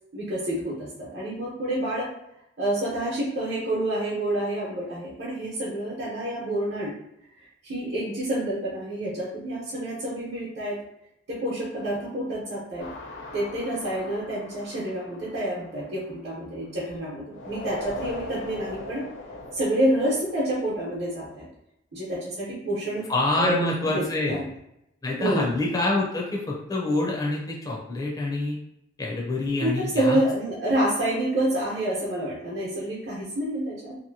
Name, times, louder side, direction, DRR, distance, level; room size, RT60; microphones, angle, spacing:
voice 1, 0.1-2.1 2.6-6.9 7.6-10.7 11.3-12.9 13.3-19.0 19.5-21.5 21.9-23.0 23.3-24.5 25.2-25.5 29.6-34.0, right 1 dB, 55° right, -7 dB, 0.9 m, -28 dB
sound 1, 12.8-16.8 17.3-21.5, left 2 dB, 75° left, 0.6 m, -41 dB
voice 2, 23.1-24.4 25.0-28.6 29.0-30.2, left 2 dB, 20° left, -3 dB, 0.4 m, -26 dB
2.8 x 2.5 x 2.7 m, 0.82 s
head